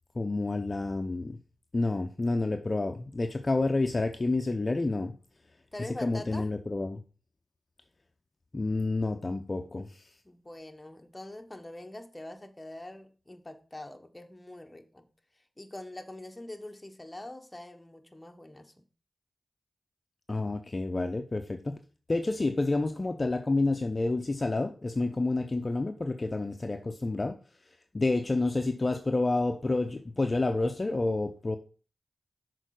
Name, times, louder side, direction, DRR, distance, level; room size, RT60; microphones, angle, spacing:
voice 1, 0.2-1.4 1.7-5.1 6.0-7.0 8.5-10.0 20.3-21.8 22.1-27.4 27.9-31.6, left 2 dB, 35° left, 0.6 m, -29 dB
voice 2, 5.7-6.5 10.2-15.1 15.3-18.7, left 1 dB, 20° left, 1.1 m, -44 dB
6.4 x 4.2 x 6.4 m
cardioid pair, 55°, 0 cm